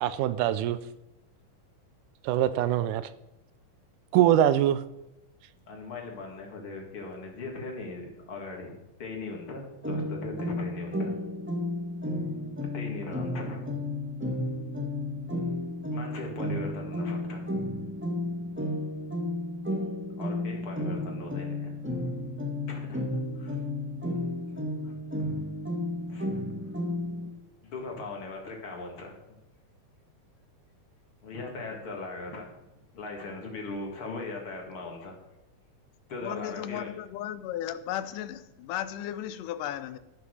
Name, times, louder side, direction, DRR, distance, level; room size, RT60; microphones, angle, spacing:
voice 1, 0.0-0.8 2.2-3.1 4.1-4.8, right 11 dB, 80° right, 2.1 m, -23 dB
voice 2, 5.7-11.1 12.7-13.7 15.9-17.4 20.2-21.7 22.7-23.0 23.4-23.6 24.8-25.0 26.1-26.3 27.6-29.2 31.2-32.5 32.9-35.2 36.1-36.9, left 3 dB, 45° left, 2.6 m, -39 dB
sound 1, 9.8-27.3, left 1 dB, 10° right, 0.6 m, -33 dB
voice 3, 36.2-40.0, left 11 dB, 85° left, 2.2 m, -35 dB
14.0 x 5.9 x 6.3 m
omnidirectional pair, 3.7 m